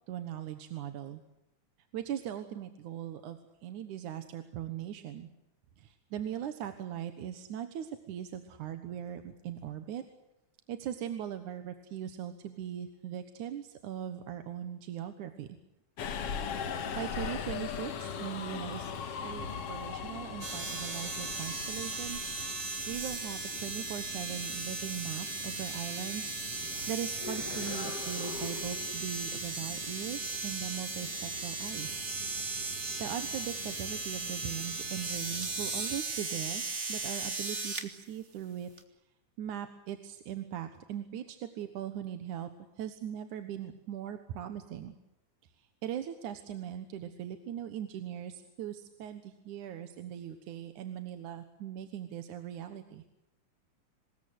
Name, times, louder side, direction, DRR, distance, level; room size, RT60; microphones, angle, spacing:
voice 1, 0.1-1.2 1.9-5.3 5.8-10.0 10.7-15.5 16.9-22.2 22.9-26.3 26.6-32.0 33.0-36.6 36.9-38.7 39.4-42.5 42.8-44.9 45.6-53.0, right 10 dB, 75° right, 9 dB, 2.7 m, -40 dB
Subway metro underground, 16.0-35.9, left 6 dB, 55° left, 2.3 m, -42 dB
sound 1, 20.4-37.9 38.8-38.9, right 4 dB, 25° right, 2.0 m, -37 dB
25.5 x 20.5 x 7.9 m, 0.90 s
omnidirectional pair, 3.6 m